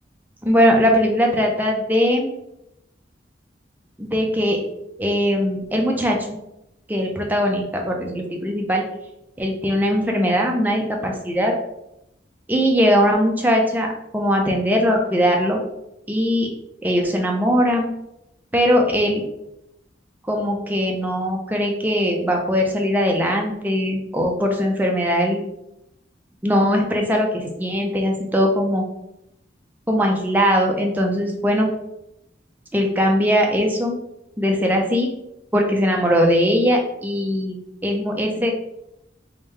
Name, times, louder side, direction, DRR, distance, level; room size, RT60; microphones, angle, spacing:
voice 1, 0.4-2.3 4.0-4.6 5.0-6.4 6.9-8.8 9.4-11.5 12.5-13.9 14.1-15.6 16.1-16.5 16.8-17.9 18.5-19.2 20.3-25.4 26.4-28.8 29.9-31.7 32.7-34.0 34.4-35.1 35.5-38.5, equal, 10° right, 1 dB, 0.5 m, -20 dB
3.6 x 2.6 x 3.2 m, 0.84 s
head